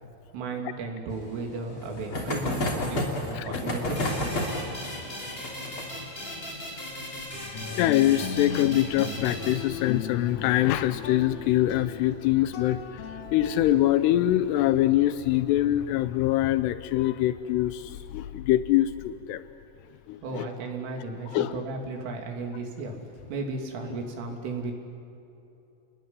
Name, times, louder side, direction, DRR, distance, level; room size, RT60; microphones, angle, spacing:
voice 1, 0.3-4.3 20.2-24.7, right 3 dB, 75° right, 2 dB, 5.6 m, -35 dB
sound 1, 1.1-10.3 10.6-10.7 10.9-11.0 11.3-11.4 12.8-13.0 13.7-14.1, left 1 dB, 30° left, 3.1 m, -33 dB
sound 2, 4.0-10.3, left 1 dB, 10° left, 5.3 m, -38 dB
voice 2, 7.5-19.4 20.1-20.5 21.3-21.6 23.9-24.0, left 14 dB, 90° left, 12 dB, 2.3 m, -24 dB
sound 3, 7.5-13.8, left 6 dB, 70° left, 4.8 m, -37 dB
30.0 x 20.0 x 9.8 m, 2.9 s
omnidirectional pair, 5.7 m